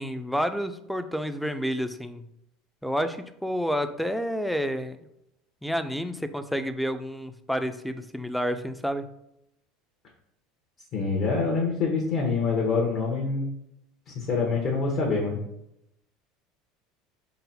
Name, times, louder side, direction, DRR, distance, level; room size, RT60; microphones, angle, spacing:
voice 1, 0.0-2.2 2.8-5.0 5.6-9.1, equal, ahead, 10 dB, 0.3 m, -29 dB
voice 2, 10.9-13.5 14.1-15.4, left 4 dB, 50° left, -1 dB, 0.8 m, -25 dB
3.9 x 2.0 x 4.1 m, 0.81 s
supercardioid pair, 115°, 0 cm